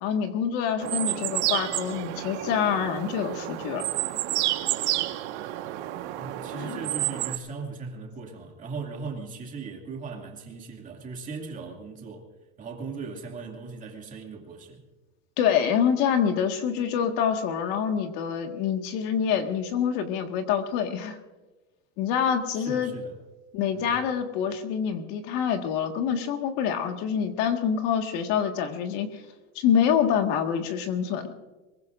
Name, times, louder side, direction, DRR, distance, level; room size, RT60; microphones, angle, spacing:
voice 1, 0.0-3.8 6.5-6.8 15.4-21.2 22.0-22.9 23.5-29.2 29.6-31.3, left 8 dB, 55° left, 1.8 m, -26 dB
sound 1, 0.8-7.4, right 16 dB, 85° right, 1.5 m, -30 dB
voice 2, 6.1-12.3 12.6-14.9 22.5-23.2 23.7-24.0, right 4 dB, 25° right, 2.5 m, -38 dB
24.0 x 22.5 x 2.6 m
cardioid pair, 170°, 34 cm